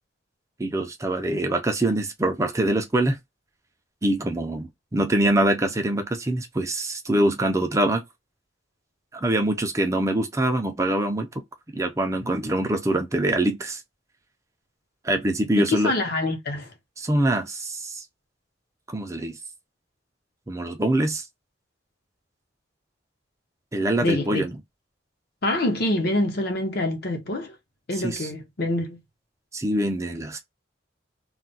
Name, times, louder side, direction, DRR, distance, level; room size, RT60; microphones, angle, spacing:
voice 1, 0.6-3.2 4.0-8.0 9.1-11.3 11.7-13.8 15.0-15.9 17.0-18.0 18.9-19.4 20.5-21.3 23.7-24.5 28.0-28.3 29.5-30.4, right 1 dB, 15° right, 0.4 m, -24 dB
voice 2, 15.6-16.7 24.0-24.4 25.4-27.5 27.9-29.0, left 2 dB, 55° left, 0.9 m, -25 dB
2.4 x 2.2 x 3.9 m
head